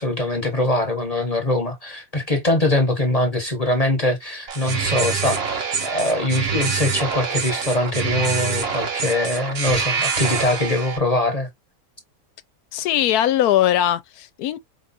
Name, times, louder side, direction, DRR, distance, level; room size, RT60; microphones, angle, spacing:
voice 1, 0.0-11.5, left 1 dB, 30° left, 1.1 m, -22 dB
sound 1, 4.5-11.0, right 6 dB, 45° right, 1.1 m, -25 dB
voice 2, 12.7-14.6, left 12 dB, 85° left, 1.2 m, -20 dB
4.8 x 3.2 x 2.6 m
omnidirectional pair, 1.6 m